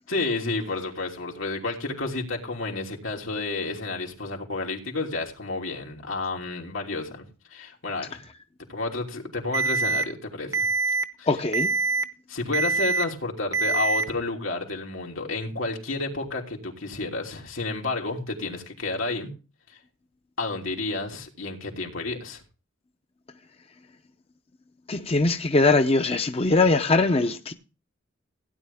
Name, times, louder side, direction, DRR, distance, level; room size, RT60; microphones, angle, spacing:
voice 1, 0.1-7.2 7.5-8.2 8.7-10.7 11.2-11.3 12.3-19.3 20.4-22.4, left 3 dB, 90° left, 3.2 m, -31 dB
Alarm, 9.5-10.0 10.5-11.0 11.5-12.0 12.5-13.0 13.5-14.0, right 4 dB, 15° right, 0.7 m, -24 dB
voice 2, 11.3-11.7 24.9-27.5, left 3 dB, 30° left, 0.7 m, -21 dB
16.5 x 9.7 x 3.6 m
head